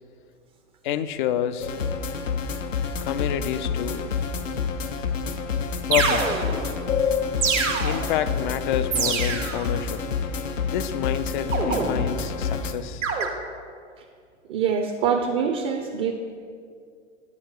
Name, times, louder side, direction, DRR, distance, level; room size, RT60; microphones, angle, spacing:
voice 1, 0.8-1.7 3.0-4.0 5.9-6.4 7.8-10.0 10.6-13.0, left 10 dB, 40° left, 13 dB, 0.4 m, -28 dB
sound 1, 1.6-12.7, left 5 dB, 85° left, 0.6 m, -28 dB
sound 2, 5.2-5.3 5.9-6.7 7.4-8.2 8.9-9.7 11.5-12.3 13.0-13.3, right 5 dB, 80° right, 1.1 m, -25 dB
voice 2, 14.5-16.1, right 7 dB, 35° right, 4 dB, 0.6 m, -24 dB
9.7 x 4.5 x 4.5 m, 2.2 s
figure-of-eight pair, 95°, 37 cm